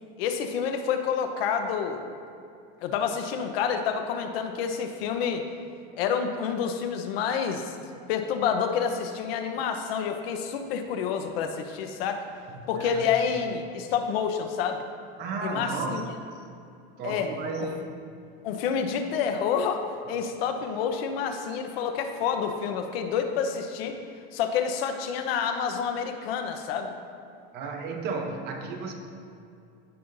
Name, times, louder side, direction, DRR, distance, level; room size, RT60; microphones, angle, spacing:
voice 1, 0.2-2.0 2.8-5.4 6.0-7.7 8.1-12.2 12.7-14.8 15.4-16.0 17.0-17.3 17.6-17.7 18.4-24.0 24.3-26.9, left 7 dB, 90° left, 6 dB, 0.9 m, -28 dB
voice 2, 12.5-13.1 15.2-16.0 17.0-17.9 27.5-28.9, right 4 dB, 35° right, 3 dB, 0.8 m, -33 dB
15.5 x 5.6 x 2.6 m, 2.5 s
cardioid pair, 175°, 29 cm